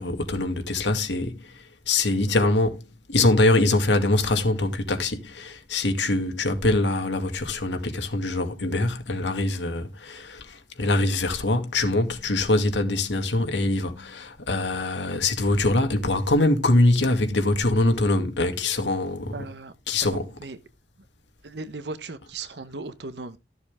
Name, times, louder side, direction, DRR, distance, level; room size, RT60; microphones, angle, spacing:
voice 1, 0.0-2.8 3.1-19.4 19.9-20.3, left 2 dB, 80° left, 2.2 m, -23 dB
voice 2, 19.3-19.7 20.1-20.6 21.4-23.4, right 3 dB, 65° right, 1.0 m, -37 dB
13.5 x 7.0 x 3.5 m
head